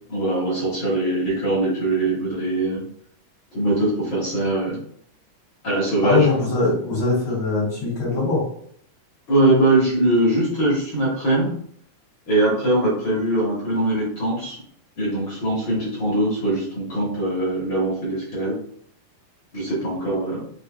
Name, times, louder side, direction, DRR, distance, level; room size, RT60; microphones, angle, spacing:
voice 1, 0.1-2.8 3.5-4.8 5.6-6.5 9.3-11.5 12.3-14.6 15.0-18.6 19.5-20.4, right 1 dB, 50° left, -6 dB, 1.5 m, -22 dB
voice 2, 6.0-8.4, left 3 dB, 70° left, -5 dB, 3.1 m, -21 dB
6.2 x 2.6 x 2.3 m, 0.63 s
omnidirectional pair, 3.6 m